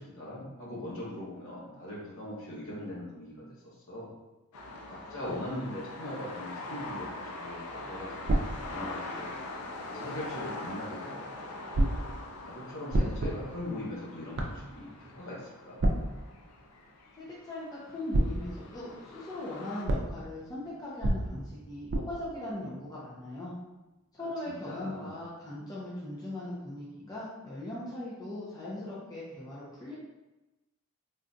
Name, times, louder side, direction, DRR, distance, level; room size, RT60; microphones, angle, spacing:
voice 1, 0.0-4.1 4.9-9.3 9.9-11.6 12.4-15.8 24.2-24.3 24.6-25.1, left 1 dB, 65° left, -6 dB, 1.1 m, -40 dB
sound 1, 4.5-19.8, left 2 dB, 85° left, 0.5 m, -43 dB
sound 2, 8.3-10.2 11.7-17.8 18.1-23.6, right 1 dB, 50° right, 0.4 m, -33 dB
voice 2, 17.2-23.5 24.2-30.0, left 1 dB, 15° left, -8 dB, 0.5 m, -39 dB
3.7 x 2.3 x 2.6 m, 1.1 s
head